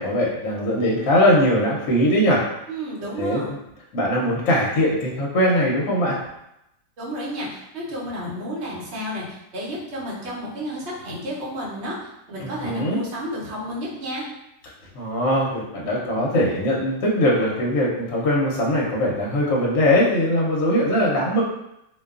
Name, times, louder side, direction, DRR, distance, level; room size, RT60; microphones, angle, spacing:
voice 1, 0.0-2.4 3.2-3.6 3.9-6.2 12.4-13.0 14.9-21.4, equal, 65° left, -3 dB, 0.9 m, -21 dB
voice 2, 2.7-3.5 7.0-12.0 12.3-14.3, equal, 55° right, -6 dB, 0.9 m, -31 dB
2.7 x 2.3 x 2.3 m, 0.84 s
omnidirectional pair, 1.7 m